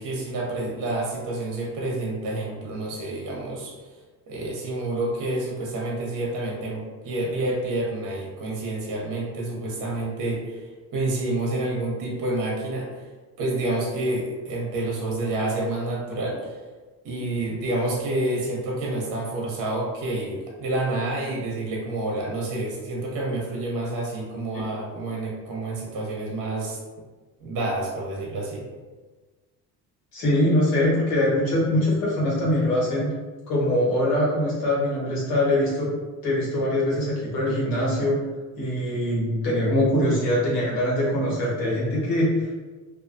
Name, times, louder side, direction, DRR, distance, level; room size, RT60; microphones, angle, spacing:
voice 1, 0.0-3.7 4.3-13.0 13.4-16.6 17.0-26.8 27.4-28.6, right 2 dB, 60° right, -3 dB, 0.8 m, -28 dB
voice 2, 30.1-33.1 33.5-35.9 36.2-38.2 38.6-42.5, left 1 dB, 75° left, -6 dB, 1.3 m, -23 dB
2.5 x 2.3 x 2.5 m, 1.3 s
supercardioid pair, 85°, 36 cm